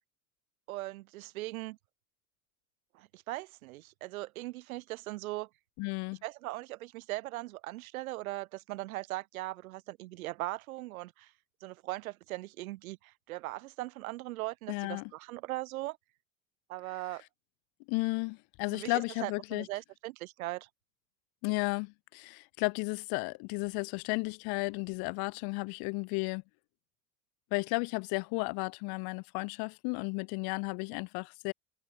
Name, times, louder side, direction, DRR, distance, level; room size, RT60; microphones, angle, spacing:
voice 1, 0.7-1.8 2.9-5.5 6.2-11.3 11.6-16.0 16.7-17.2 18.7-18.9 19.2-20.7, right 18 dB, 90° right, 0.7 m, -39 dB
voice 2, 5.8-6.2 14.7-15.1 17.9-19.7 21.4-26.4 27.5-31.5, left 31 dB, 60° left, 1.1 m, -33 dB
supercardioid pair, 95°, 41 cm